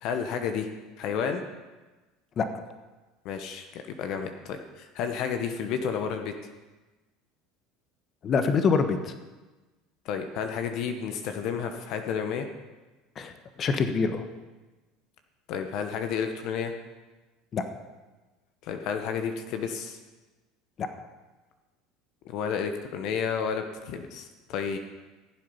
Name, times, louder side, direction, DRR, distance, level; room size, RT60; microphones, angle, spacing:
voice 1, 0.0-0.7 1.0-1.4 3.2-6.3 10.0-12.5 15.5-16.7 18.6-20.0 22.2-24.8, left 7 dB, 60° left, 6 dB, 1.1 m, -31 dB
voice 2, 8.2-9.1 13.2-13.3 13.6-14.2 17.5-17.6 20.8-20.9, left 5 dB, 40° left, 8 dB, 1.1 m, -25 dB
14.5 x 7.8 x 5.6 m, 1.2 s
hypercardioid pair, 85°, 0 cm